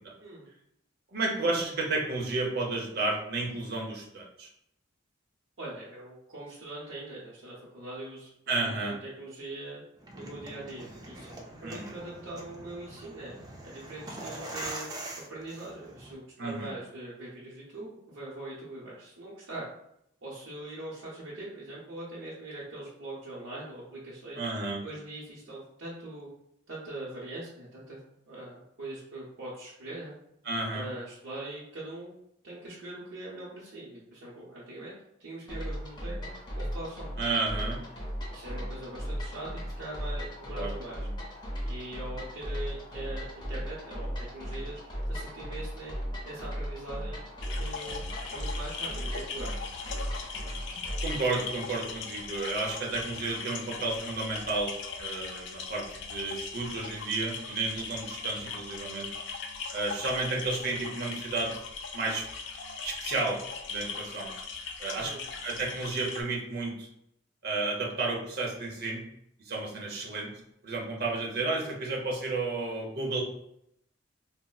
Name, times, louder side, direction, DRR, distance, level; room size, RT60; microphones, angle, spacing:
voice 1, 1.1-4.5 8.5-9.0 11.6-12.0 16.4-16.7 24.4-24.8 30.4-30.9 37.2-37.8 40.5-40.7 51.0-59.1 59.7-61.5 61.9-62.3 62.8-63.4 63.7-64.3 64.8-65.1 65.4-66.9 67.4-69.0 69.4-70.3 70.6-73.2, right 3 dB, 55° right, -1 dB, 0.7 m, -32 dB
voice 2, 5.6-8.3 8.6-9.8 10.1-11.3 11.6-13.4 13.6-14.9 15.2-19.7 20.2-24.4 24.8-26.3 26.7-28.0 28.3-30.1 30.7-32.1 32.4-34.9 35.2-37.0 37.6-37.7 38.3-41.1 41.6-44.8 45.1-45.9 46.2-47.2 47.6-48.0 48.3-49.7 64.9-65.2, right 2 dB, 85° right, -7 dB, 0.8 m, -42 dB
sound 1, 10.0-16.1, right 1 dB, 20° right, 0.4 m, -43 dB
sound 2, 35.5-51.3, equal, 20° left, 0.7 m, -37 dB
sound 3, 47.4-66.2, left 5 dB, 65° left, 0.4 m, -40 dB
4.1 x 2.0 x 2.3 m, 0.77 s
head